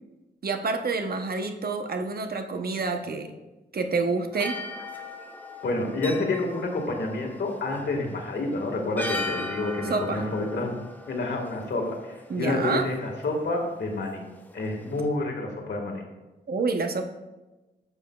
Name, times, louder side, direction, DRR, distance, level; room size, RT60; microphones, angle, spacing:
voice 1, 0.4-3.3 3.7-4.6 9.9-10.2 12.3-12.9 16.5-17.0, right 4 dB, 60° right, 6 dB, 0.8 m, -28 dB
sound 1, 4.3-15.1, left 2 dB, 10° left, 0.8 m, -39 dB
voice 2, 5.6-10.8 11.1-14.3 14.5-16.0, left 2 dB, 85° left, 1 dB, 1.7 m, -29 dB
11.5 x 7.3 x 2.3 m, 1.1 s
wide cardioid pair, 90°, 18 cm